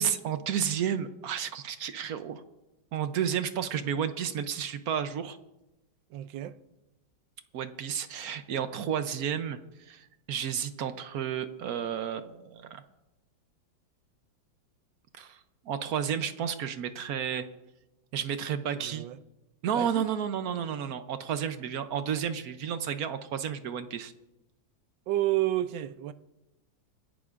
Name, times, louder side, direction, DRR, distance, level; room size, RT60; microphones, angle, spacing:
voice 1, 0.0-2.4 2.9-5.4 7.5-12.8 15.2-15.4 15.7-17.4 18.1-19.1 19.6-24.1, right 8 dB, 65° right, 1.0 m, -32 dB
voice 2, 6.1-6.6 18.7-19.2 19.8-20.1 25.1-26.1, right 14 dB, 85° right, 1.3 m, -30 dB
26.0 x 11.0 x 2.5 m
omnidirectional pair, 2.0 m